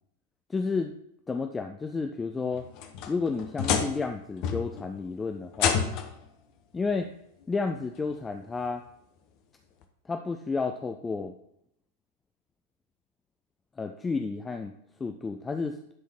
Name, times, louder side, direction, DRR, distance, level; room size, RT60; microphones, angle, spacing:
voice 1, 0.5-0.9 1.3-2.7 3.1-5.9 6.7-7.1 7.5-8.8 10.1-11.3 13.8-14.7 15.0-15.8, left 4 dB, 15° left, 5 dB, 0.4 m, -31 dB
sound 1, 2.5-4.1 4.4-4.9 5.5-6.2 7.4-7.5 8.1-8.2 9.8-9.9, left 7 dB, 40° left, 0.8 m, -29 dB
10.5 x 3.7 x 4.4 m, 0.75 s
figure-of-eight pair, 90°, 0 cm